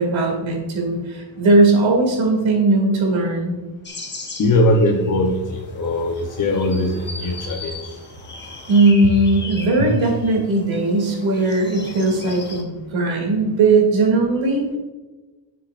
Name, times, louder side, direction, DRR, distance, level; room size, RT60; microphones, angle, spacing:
voice 1, 0.0-3.5 8.7-14.8, right 2 dB, 85° right, 0 dB, 2.6 m, -18 dB
sound 1, 3.8-12.6, left 3 dB, 25° left, 1.1 m, -38 dB
voice 2, 4.4-7.9 9.8-9.9, left 1 dB, 45° left, -1 dB, 0.8 m, -20 dB
11.0 x 6.8 x 2.5 m, 1.2 s
wide cardioid pair, 150°, 45 cm